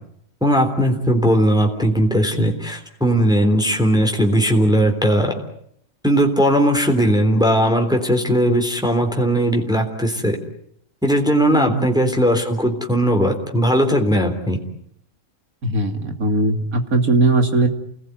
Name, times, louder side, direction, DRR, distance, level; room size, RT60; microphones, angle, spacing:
voice 1, 0.4-5.3 6.0-10.4 11.0-14.6, equal, ahead, 2 dB, 3.6 m, -18 dB
voice 2, 11.5-11.9 15.6-17.7, right 2 dB, 65° right, 6 dB, 3.0 m, -19 dB
29.5 x 19.5 x 9.4 m, 0.71 s
omnidirectional pair, 1.6 m